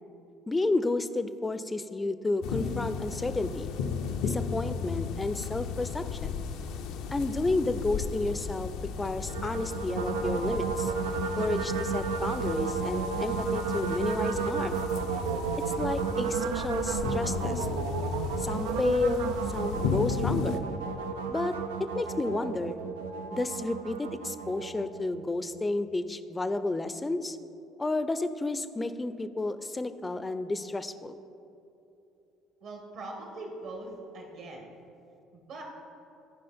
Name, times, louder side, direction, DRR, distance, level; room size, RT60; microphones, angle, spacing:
voice 1, 0.5-3.7 4.2-6.4 7.1-8.7 9.0-10.9 11.4-14.8 15.8-17.7 18.4-20.6 21.3-21.5 21.9-22.8 23.3-27.4 27.8-31.2, left 2 dB, 20° left, 12 dB, 0.5 m, -31 dB
sound 1, 2.4-20.6, left 6 dB, 70° left, 0.6 m, -35 dB
sound 2, 9.3-25.5, right 6 dB, 85° right, 0.4 m, -32 dB
voice 2, 32.6-34.7 35.3-35.6, right 2 dB, 65° right, 1 dB, 2.0 m, -42 dB
14.0 x 5.0 x 4.4 m, 2.8 s
hypercardioid pair, 60°, 0 cm